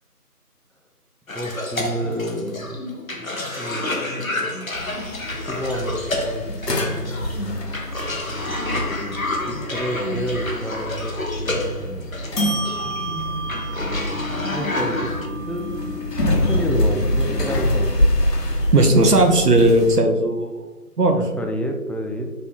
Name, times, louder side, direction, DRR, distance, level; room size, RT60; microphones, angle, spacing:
Cough, 1.3-15.3, left 2 dB, 60° left, 0.6 m, -29 dB
voice 1, 1.3-2.8 3.6-4.5 5.5-7.8 8.8-8.9 9.4-11.9 12.8-13.0 13.4-17.9 21.1-22.3, equal, 5° left, 1 dB, 0.3 m, -30 dB
sound 1, 4.7-20.0, left 1 dB, 85° left, 0.9 m, -25 dB
voice 2, 18.7-20.6 21.0-21.2, right 2 dB, 75° right, 4 dB, 0.8 m, -16 dB
3.3 x 2.3 x 4.3 m, 1.1 s
figure-of-eight pair, 175°, 47 cm